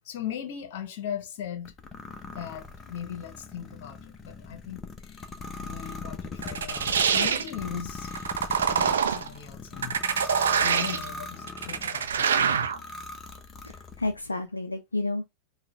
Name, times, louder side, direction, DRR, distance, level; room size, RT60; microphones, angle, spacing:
voice 1, 0.0-1.7 2.2-4.8 5.0-5.3 5.6-8.1 8.5-12.7, left 9 dB, 50° left, 1.0 m, -39 dB
sound 1, 1.7-12.0 12.5-14.2, left 3 dB, 20° left, 0.8 m, -40 dB
sound 2, 6.4-7.5 8.1-9.3 9.8-11.1 11.5-12.8, right 7 dB, 65° right, 0.5 m, -25 dB
voice 2, 13.6-15.2, left 2 dB, 80° left, 0.4 m, -31 dB
5.8 x 2.4 x 3.2 m
figure-of-eight pair, 90°, 0 cm